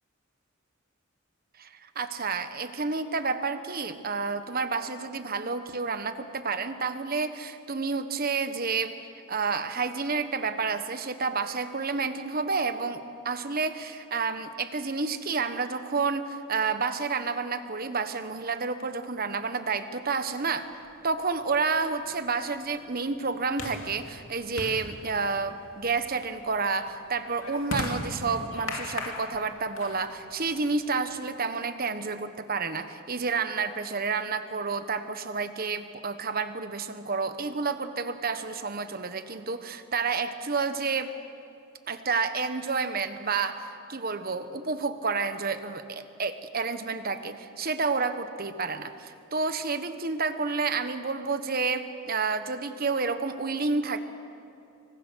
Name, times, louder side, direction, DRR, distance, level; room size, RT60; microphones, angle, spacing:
voice 1, 1.6-8.9 9.3-20.7 21.0-41.1 41.9-54.0, right 4 dB, 45° right, 10 dB, 1.3 m, -30 dB
sound 1, 20.9-31.3, left 2 dB, 80° left, 2.5 m, -40 dB
25.5 x 24.0 x 6.4 m, 2.6 s
head